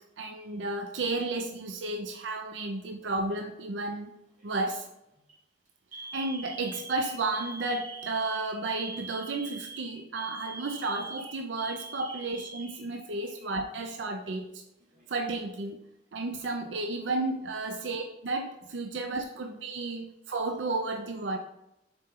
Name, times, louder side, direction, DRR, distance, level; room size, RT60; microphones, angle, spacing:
voice 1, 0.2-4.1 4.4-4.9 6.1-14.6 15.1-15.8 16.1-21.4, right 2 dB, 80° right, 5 dB, 0.6 m, -32 dB
Alarm, 3.0-3.5 4.4-4.7 5.1-5.3 5.9-13.5 13.8-13.9 14.8-15.5, right 3 dB, 45° right, 2.2 m, -44 dB
6.8 x 4.4 x 3.7 m, 0.87 s
head